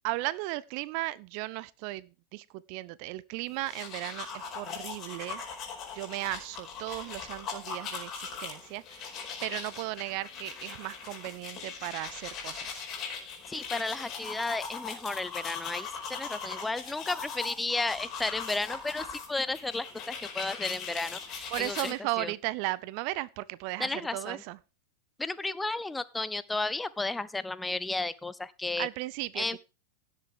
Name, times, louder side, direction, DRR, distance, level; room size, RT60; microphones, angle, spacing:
voice 1, 0.0-5.4 5.9-9.1 9.4-12.8 21.5-24.6 28.8-29.6, right 19 dB, 45° right, 0.5 m, -36 dB
sound 1, 3.5-21.9, left 6 dB, 35° left, 4.7 m, -40 dB
voice 2, 13.5-22.3 23.8-24.4 25.2-28.9 29.3-29.6, left 2 dB, 10° left, 0.7 m, -33 dB
17.0 x 7.3 x 3.6 m
figure-of-eight pair, 90°, 0 cm